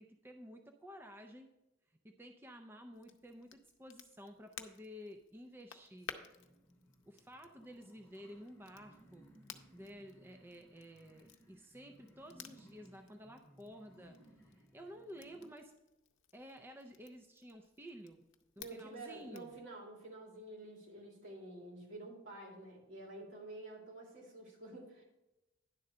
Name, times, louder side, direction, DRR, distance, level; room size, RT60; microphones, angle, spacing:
voice 1, 0.0-1.5 2.0-6.1 7.1-9.3 9.7-15.7 16.3-18.2 18.7-19.6, equal, 10° right, 4 dB, 0.5 m, -52 dB
Crackle, 2.9-19.6, left 7 dB, 70° left, 0.7 m, -56 dB
sound 1, 5.9-15.5, equal, 15° left, 2.1 m, -63 dB
voice 2, 18.6-25.0, right 2 dB, 70° right, -3 dB, 3.4 m, -50 dB
10.5 x 3.9 x 6.6 m, 0.96 s
head